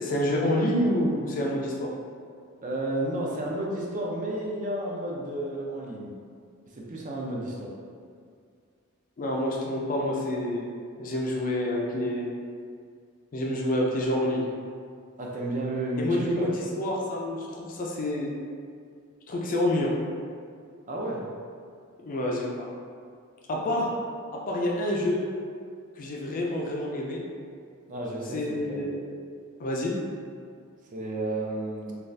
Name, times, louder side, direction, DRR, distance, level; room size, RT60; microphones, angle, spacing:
voice 1, 0.0-1.9 9.2-10.7 11.0-12.3 13.3-14.5 16.0-18.3 19.3-19.9 22.0-22.7 23.5-23.9 24.3-25.2 26.0-27.2 28.3-29.0 29.6-29.9, left 1 dB, 40° left, -2 dB, 0.3 m, -28 dB
voice 2, 2.6-6.1 6.7-7.7 15.2-16.5 20.9-21.2 27.9-28.9 30.9-32.0, right 1 dB, 35° right, -2 dB, 0.4 m, -32 dB
2.6 x 2.3 x 3.2 m, 2.2 s
head